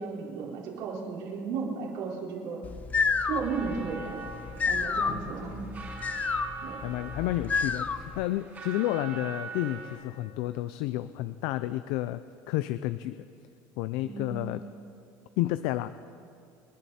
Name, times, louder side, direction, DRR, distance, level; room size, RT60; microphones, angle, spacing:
voice 1, 0.0-2.6 3.2-4.2 4.7-5.7 6.6-6.8 14.0-14.5, right 5 dB, 75° right, -4 dB, 4.5 m, -34 dB
sound 1, 2.6-8.2, left 5 dB, 20° left, 0.5 m, -30 dB
sound 2, 3.4-10.0, right 4 dB, 25° right, 3.3 m, -43 dB
voice 2, 5.1-5.5 6.8-12.2 12.5-13.3 13.8-14.6 15.4-15.9, left 15 dB, 70° left, 13 dB, 0.5 m, -31 dB
28.5 x 11.0 x 4.3 m, 2.5 s
cardioid pair, 165°, 8 cm